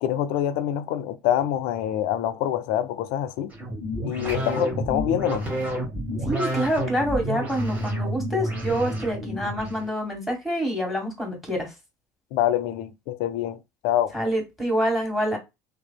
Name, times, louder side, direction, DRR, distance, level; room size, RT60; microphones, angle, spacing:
voice 1, 0.0-3.5 4.0-5.5 12.3-14.1, left 11 dB, 65° left, 0.3 m, -26 dB
sound 1, 3.5-9.8, equal, 15° right, 1.1 m, -29 dB
voice 2, 6.2-11.7 14.1-15.4, equal, ahead, 1.4 m, -26 dB
2.6 x 2.3 x 2.3 m
hypercardioid pair, 70°, 9 cm